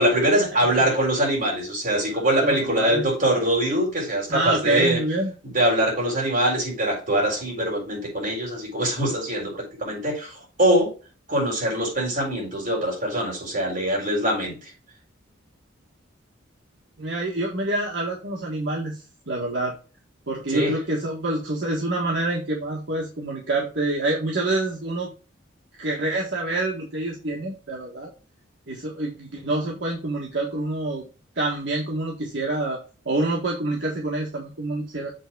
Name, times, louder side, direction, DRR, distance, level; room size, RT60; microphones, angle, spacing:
voice 1, 0.0-5.0 5.4-10.9 11.3-14.7 20.5-20.7, right 1 dB, 40° right, -2 dB, 3.8 m, -23 dB
voice 2, 2.1-3.1 4.3-5.3 17.0-19.7 20.3-25.1 25.8-28.1 28.7-31.0 31.3-32.8 33.0-35.1, right 2 dB, 65° right, -2 dB, 1.5 m, -27 dB
7.6 x 3.5 x 4.7 m, 0.35 s
head